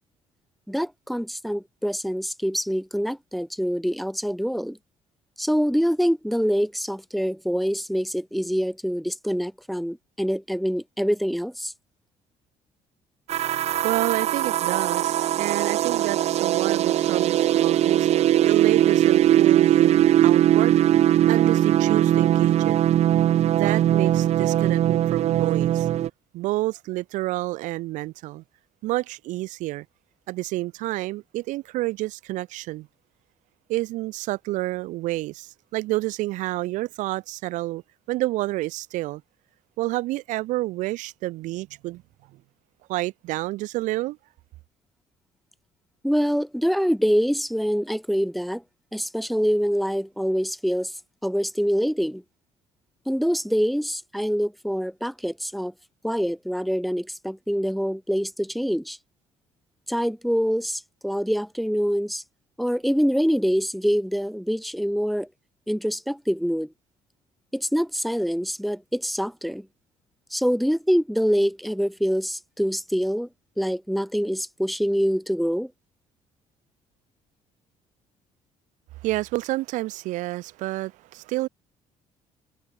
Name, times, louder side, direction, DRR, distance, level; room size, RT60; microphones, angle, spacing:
voice 1, 0.7-4.8 5.4-11.7 46.0-48.6 48.9-50.9 51.2-52.2 53.1-55.7 56.0-59.0 59.9-62.2 62.6-65.3 65.7-66.7 67.5-69.7 70.3-73.3 73.6-75.7, equal, ahead, 0.7 m, -25 dB
sound 1, 13.3-26.1, right 12 dB, 60° right, 1.7 m, -20 dB
voice 2, 13.8-21.0 21.3-22.8 23.5-25.9 26.3-28.4 28.8-29.8 30.3-32.9 33.7-37.8 38.1-39.2 39.8-42.0 42.9-44.2 79.0-81.5, right 18 dB, 90° right, 5.0 m, -29 dB
cardioid pair, 130°, 12 cm